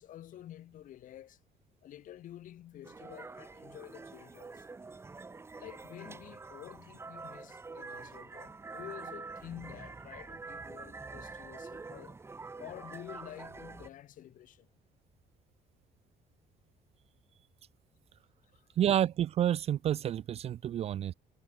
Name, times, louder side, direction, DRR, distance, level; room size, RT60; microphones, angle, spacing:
voice 1, 0.0-1.4 1.8-4.7 5.6-12.2 12.6-14.7 18.5-18.7, left 12 dB, 60° left, 4.7 m, -49 dB
sound 1, 2.8-13.9, right 3 dB, 15° right, 1.3 m, -46 dB
voice 2, 18.8-21.1, right 11 dB, 40° right, 0.4 m, -29 dB
cardioid pair, 155°, 15 cm